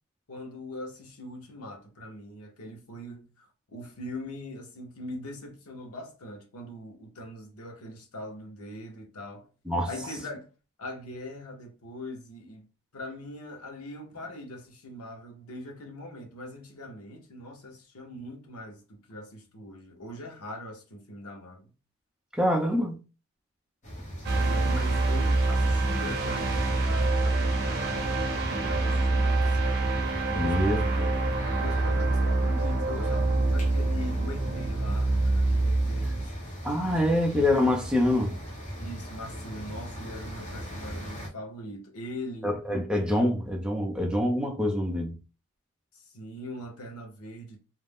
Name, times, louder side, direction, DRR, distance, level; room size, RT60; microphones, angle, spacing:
voice 1, 0.3-9.5 9.8-10.5 10.8-12.7 12.9-21.7 24.3-29.8 30.3-30.8 31.6-36.5 38.8-42.6 45.9-47.6, left 1 dB, 90° left, 0.8 m, -41 dB
voice 2, 22.3-23.0 30.3-31.1 36.0-36.1 36.6-38.3 42.4-45.2, left 1 dB, 5° right, 0.4 m, -25 dB
sound 1, 23.8-41.3, equal, 30° left, 0.9 m, -39 dB
sound 2, 24.2-36.3, right 2 dB, 45° right, 0.6 m, -26 dB
2.4 x 2.1 x 3.4 m
head